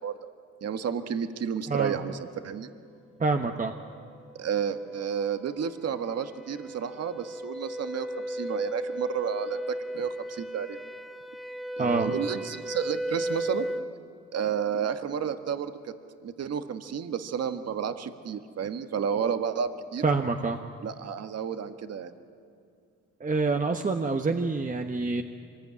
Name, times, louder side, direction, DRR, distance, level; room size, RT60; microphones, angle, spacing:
voice 1, 0.6-2.7 4.4-10.8 11.8-13.7 14.3-15.9 16.2-20.0 20.8-22.1, right 7 dB, 55° right, 8 dB, 1.5 m, -31 dB
voice 2, 3.2-3.7 11.8-12.1 20.0-20.6 23.2-25.2, right 4 dB, 25° right, 4 dB, 1.2 m, -26 dB
sound 1, 4.0-14.0, equal, ahead, 0.9 m, -35 dB
25.0 x 20.5 x 9.7 m, 2.4 s
cardioid pair, 90°, 30 cm